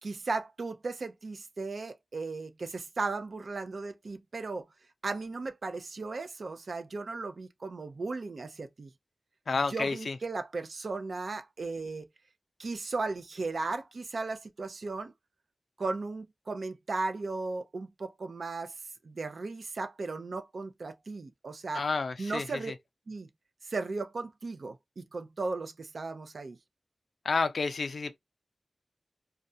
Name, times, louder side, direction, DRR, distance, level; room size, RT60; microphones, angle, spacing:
voice 1, 0.0-4.7 5.0-8.9 9.7-12.1 12.6-15.1 15.8-18.7 19.0-21.9 22.2-22.7 23.1-23.3 23.6-26.6, right 3 dB, 75° right, 0.5 m, -36 dB
voice 2, 9.5-10.1 21.7-22.4 27.2-28.2, left 4 dB, 85° left, 0.4 m, -30 dB
2.4 x 2.2 x 2.6 m
wide cardioid pair, 90°, 0 cm